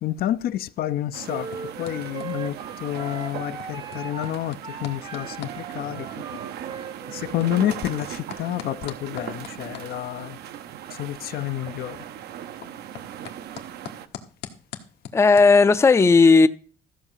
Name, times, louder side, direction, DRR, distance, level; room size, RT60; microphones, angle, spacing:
voice 1, 0.0-6.4 7.1-10.4 10.9-12.0 12.6-12.7, left 12 dB, 60° left, 0.5 m, -29 dB
sound 1, 0.7-15.8, left 9 dB, 85° left, 1.4 m, -45 dB
sound 2, 1.1-14.1, right 10 dB, 75° right, 0.8 m, -39 dB
sound 3, 1.3-7.8, right 5 dB, 30° right, 0.7 m, -38 dB
voice 2, 15.1-16.5, left 4 dB, 15° left, 0.5 m, -14 dB
14.0 x 4.8 x 7.4 m
cardioid pair, 110°, 17 cm